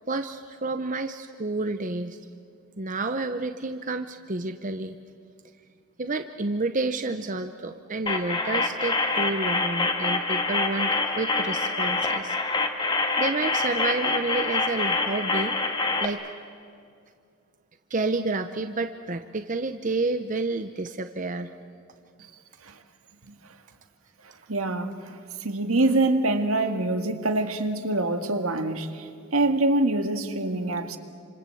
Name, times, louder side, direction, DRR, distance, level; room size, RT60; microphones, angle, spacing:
voice 1, 0.1-2.2 2.8-5.0 6.0-12.4 13.2-15.5 16.0-16.2 17.9-21.5, right 3 dB, 35° right, 8 dB, 0.8 m, -30 dB
sound 1, 8.1-16.1, left 3 dB, 20° left, 1.7 m, -26 dB
voice 2, 24.5-25.1 25.4-31.0, right 2 dB, 75° right, 7 dB, 1.9 m, -25 dB
29.0 x 26.5 x 7.8 m, 2.3 s
head